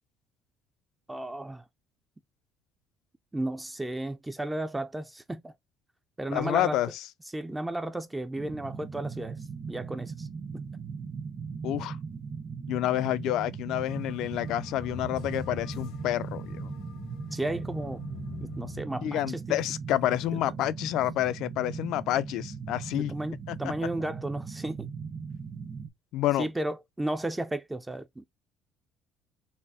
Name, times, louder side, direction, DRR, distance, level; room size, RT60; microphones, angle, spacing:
voice 1, 1.1-1.6 3.3-5.5 6.2-6.8 7.3-9.4 9.7-10.3 10.5-10.6 17.3-18.0 18.4-19.6 20.3-20.4 22.9-24.9 26.4-28.2, right 1 dB, 10° right, 0.3 m, -33 dB
voice 2, 6.3-7.0 11.6-12.0 12.7-16.7 19.0-23.1 23.5-23.7 26.1-26.5, left 13 dB, 70° left, 0.3 m, -29 dB
sound 1, 8.4-25.9, right 5 dB, 35° right, 0.8 m, -39 dB
sound 2, 13.8-18.8, left 8 dB, 85° left, 0.8 m, -44 dB
4.1 x 2.0 x 3.5 m
cardioid pair, 120°, 0 cm